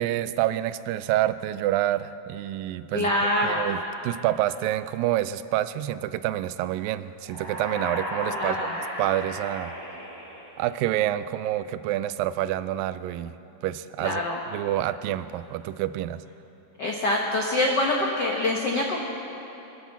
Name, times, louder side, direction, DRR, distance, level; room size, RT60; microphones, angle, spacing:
voice 1, 0.0-3.1 3.4-8.7 9.0-9.7 10.6-13.3 13.6-14.3 14.5-16.2, right 13 dB, 90° right, 14 dB, 2.3 m, -27 dB
voice 2, 2.9-3.7 8.3-8.7 14.0-14.4 16.8-19.0, left 1 dB, 80° left, -1 dB, 0.9 m, -25 dB
sound 1, 7.2-11.1, equal, 10° left, 2.1 m, -35 dB
24.0 x 8.2 x 7.1 m, 3.0 s
omnidirectional pair, 3.9 m